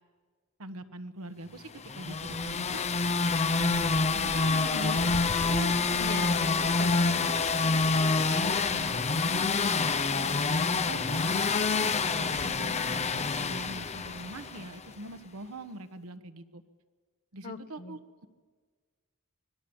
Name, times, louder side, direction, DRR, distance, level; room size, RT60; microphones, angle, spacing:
voice 1, 0.6-1.7 1.9-2.8 3.6-6.4 8.2-9.8 10.1-16.6 17.3-18.3, right 2 dB, 75° right, 10 dB, 1.3 m, -42 dB
sound 1, 1.8-14.8, left 4 dB, 30° left, 0.7 m, -27 dB
voice 2, 6.0-7.6 17.4-18.0, left 2 dB, 45° left, 10 dB, 1.2 m, -39 dB
25.0 x 20.0 x 7.2 m, 1.5 s
head